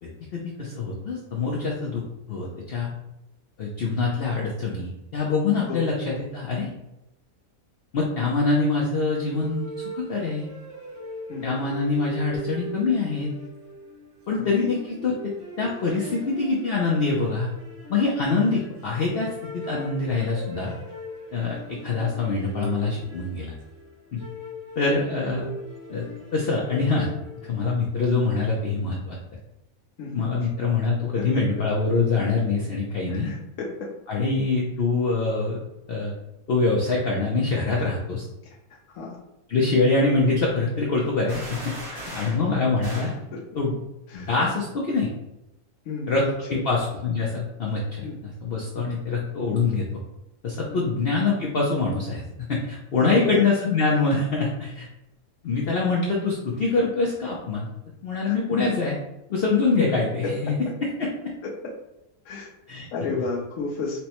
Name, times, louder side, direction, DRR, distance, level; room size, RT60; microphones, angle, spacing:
voice 1, 0.0-2.0 2.3-2.9 3.6-6.7 7.9-10.5 11.4-13.3 14.3-15.3 15.6-17.5 17.9-20.7 21.3-23.5 24.1-24.2 24.8-25.5 25.9-26.1 26.3-27.1 27.4-29.2 30.1-33.3 34.1-35.6 35.9-36.1 36.5-38.3 39.5-41.7 42.1-43.1 43.5-43.7 44.1-45.1 46.1-46.2 46.5-49.8 50.4-52.2 52.5-54.9 55.4-57.7 58.0-59.0 59.3-60.5 60.8-61.3 62.7-62.9, left 3 dB, 90° left, -3 dB, 0.5 m, -24 dB
sound 1, 9.2-27.7, left 1 dB, 65° right, 0.5 m, -40 dB
voice 2, 11.3-11.7 14.3-14.7 30.0-30.3 31.2-31.4 33.1-33.7 38.9-39.2 41.9-42.4 43.3-43.4 44.1-44.3 45.9-46.6 48.0-48.2 48.8-48.9 50.7-50.9 53.0-53.5 58.2-58.3 60.2-60.3 61.4-61.5 62.2-62.5 62.9-64.0, left 4 dB, 65° left, -4 dB, 0.9 m, -33 dB
sound 2, 41.3-42.4 42.8-43.2, right 1 dB, 90° right, 1.7 m, -37 dB
4.4 x 2.1 x 2.9 m, 0.91 s
omnidirectional pair, 1.7 m